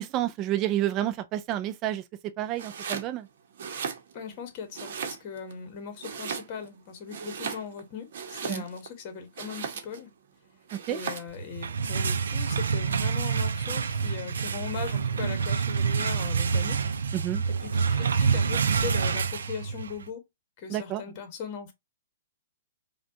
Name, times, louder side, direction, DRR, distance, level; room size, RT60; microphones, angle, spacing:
voice 1, 0.0-2.0 2.4-3.3 8.5-8.6 10.9-11.0 17.1-17.4 20.7-21.0, right 13 dB, 25° right, 0.3 m, -29 dB
Domestic sounds home sounds, 2.5-3.1 3.5-4.4 4.7-5.5 6.0-6.8 7.1-8.9 9.3-10.1 10.7-11.4, right 6 dB, 60° right, 0.9 m, -36 dB
voice 2, 4.1-10.1 10.9-16.9 17.5-20.2 20.6-21.7, left 6 dB, 30° left, 1.1 m, -39 dB
sound 1, 11.4-20.0, right 6 dB, 90° right, 0.5 m, -27 dB
5.0 x 2.3 x 2.7 m
hypercardioid pair, 160°, 0 cm